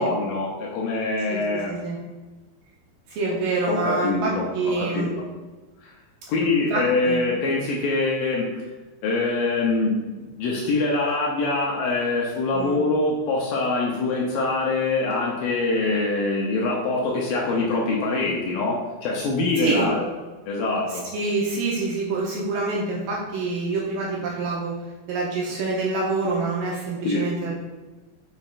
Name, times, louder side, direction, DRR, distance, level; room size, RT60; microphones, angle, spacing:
voice 1, 0.0-1.7 3.7-5.3 5.8-5.9 6.3-8.6 9.0-20.1 20.5-21.1 27.0-27.3, left 3 dB, 75° left, -3 dB, 2.2 m, -24 dB
voice 2, 1.3-2.0 3.1-5.1 6.7-7.2 12.5-12.8 19.6-19.9 21.1-24.7 25.1-27.6, right 3 dB, 75° right, -3 dB, 2.3 m, -26 dB
7.2 x 5.3 x 2.5 m, 1.2 s
omnidirectional pair, 4.7 m